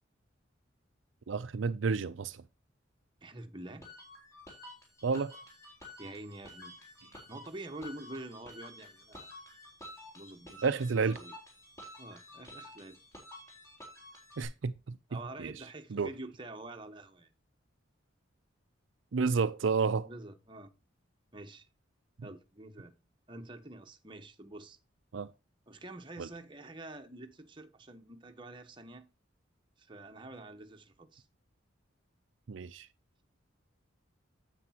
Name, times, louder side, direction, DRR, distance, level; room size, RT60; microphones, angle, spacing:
voice 1, 1.3-2.4 5.0-5.3 10.6-11.2 14.4-15.0 15.4-15.5 15.9-16.1 19.1-20.1 25.1-25.3 26.2-26.3 32.5-32.9, right 5 dB, 70° right, 0.5 m, -30 dB
voice 2, 3.2-3.9 6.0-6.8 7.3-9.3 10.1-10.6 11.2-11.3 12.0-13.0 15.1-17.3 20.0-20.7 21.3-21.7 22.2-22.9 23.3-24.8 25.7-29.1 29.8-31.2, right 2 dB, 25° right, 1.1 m, -47 dB
sound 1, 3.8-14.4, left 1 dB, 15° left, 3.9 m, -51 dB
9.6 x 8.5 x 2.9 m
head